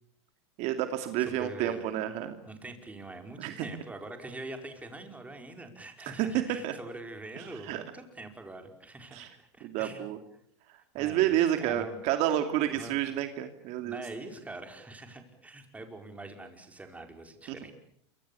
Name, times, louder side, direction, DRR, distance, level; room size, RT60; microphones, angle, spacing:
voice 1, 0.6-2.4 3.4-3.7 6.1-6.7 7.4-7.8 9.1-9.3 9.6-10.2 10.9-14.0 17.5-17.6, right 12 dB, 50° right, 7 dB, 2.6 m, -30 dB
voice 2, 1.2-1.9 2.5-10.0 11.0-12.1 12.6-13.0 13.8-17.7, right 2 dB, 10° right, 5 dB, 4.9 m, -44 dB
28.0 x 25.0 x 7.0 m, 0.67 s
supercardioid pair, 120°, 14 cm